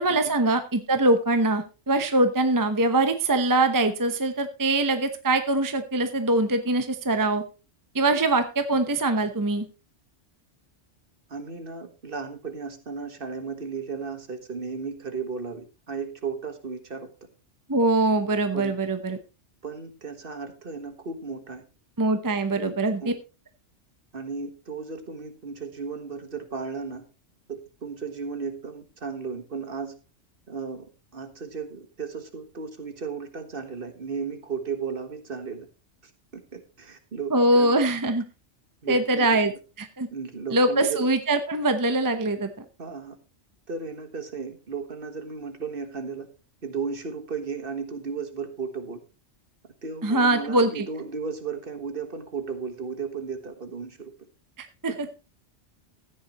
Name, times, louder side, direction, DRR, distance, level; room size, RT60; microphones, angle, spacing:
voice 1, 0.0-7.4 7.9-9.6 17.7-19.2 22.0-23.1 37.3-38.2 38.9-39.5 40.0-40.1 40.5-42.6 50.0-50.9 54.6-55.1, right 2 dB, 20° right, 8 dB, 0.8 m, -23 dB
voice 2, 11.3-17.1 18.5-18.8 19.6-21.6 22.6-22.8 23.0-23.2 24.1-27.0 27.5-29.9 30.5-30.9 31.1-35.7 36.3-37.7 38.8-39.5 40.1-41.1 42.8-43.2 43.7-46.3 46.6-49.0 49.8-54.1 54.9-55.1, right 5 dB, 50° right, 7 dB, 1.6 m, -35 dB
14.0 x 9.6 x 3.0 m, 0.30 s
omnidirectional pair, 1.3 m